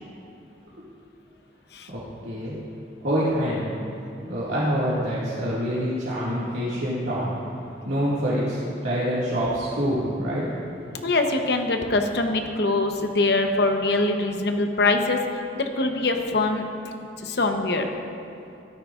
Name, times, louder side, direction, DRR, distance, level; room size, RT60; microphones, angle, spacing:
voice 1, 1.9-2.5 3.0-3.6 4.3-7.3 7.9-10.5 10.8-10.9, equal, 75° right, -9 dB, 2.1 m, -26 dB
voice 2, 11.0-15.2 15.5-16.7 17.2-17.9, left 2 dB, 60° left, 4 dB, 0.9 m, -23 dB
16.0 x 13.0 x 2.5 m, 2.8 s
head